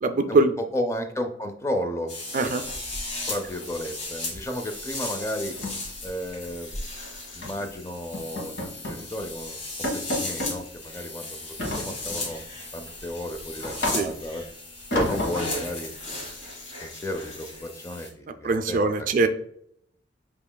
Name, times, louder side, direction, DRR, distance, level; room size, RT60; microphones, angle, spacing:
voice 1, 0.0-0.5 2.3-2.6 13.9-14.1 18.4-19.3, right 3 dB, 45° right, 9 dB, 0.4 m, -22 dB
voice 2, 0.7-2.5 3.3-5.6 6.0-6.7 7.3-9.6 9.9-12.4 12.7-14.4 14.9-15.9 16.5-19.1, left 1 dB, 15° left, 5 dB, 0.5 m, -33 dB
sound 1, 2.1-18.1, left 2 dB, 35° left, 1.3 m, -36 dB
sound 2, 2.7-3.5 3.8-4.0 4.3-4.5 4.8-4.9 5.3-6.9 7.4-7.7 8.1-9.1 9.4-9.5 9.8-10.6 11.6-12.3 12.8-14.4 14.9-15.7, left 1 dB, 65° left, 1.6 m, -31 dB
7.3 x 2.9 x 2.2 m, 0.70 s
head